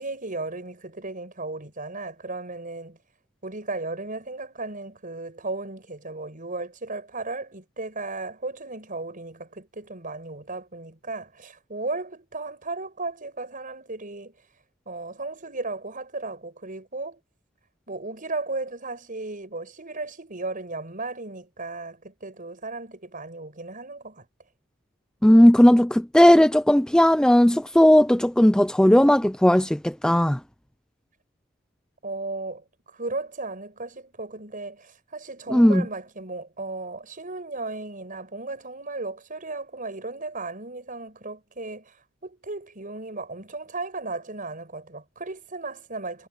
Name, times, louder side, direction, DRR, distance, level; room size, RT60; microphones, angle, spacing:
voice 1, 0.0-3.0 3.4-14.3 14.8-17.2 17.9-24.2 32.0-42.0 42.2-46.3, right 3 dB, 40° right, 6.6 m, -35 dB
voice 2, 25.2-30.4 35.5-35.8, equal, 5° left, 0.4 m, -16 dB
head